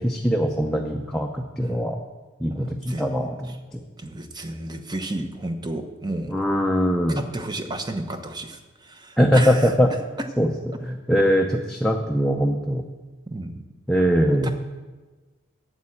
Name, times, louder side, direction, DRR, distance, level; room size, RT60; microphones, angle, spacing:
voice 1, 0.0-2.0 2.4-3.8 6.3-7.3 9.2-9.9 10.4-12.8 13.9-14.5, equal, ahead, 1 dB, 0.6 m, -22 dB
voice 2, 2.5-3.2 4.0-6.3 7.1-9.7 13.3-13.6 14.2-14.5, right 1 dB, 20° right, 7 dB, 0.9 m, -32 dB
8.7 x 7.6 x 8.6 m, 1.3 s
head